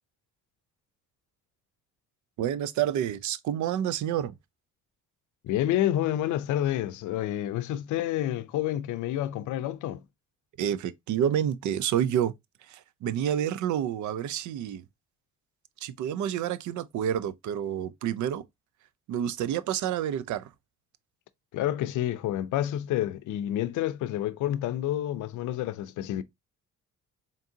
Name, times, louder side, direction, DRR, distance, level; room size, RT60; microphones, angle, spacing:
voice 1, 2.4-4.4 10.6-12.3 12.7-14.8 15.8-18.4 19.1-20.5, right 10 dB, 75° right, 0.5 m, -29 dB
voice 2, 5.4-10.0 21.5-26.2, left 12 dB, 85° left, 0.5 m, -29 dB
4.0 x 3.6 x 2.7 m
cardioid pair, 90°, 30 cm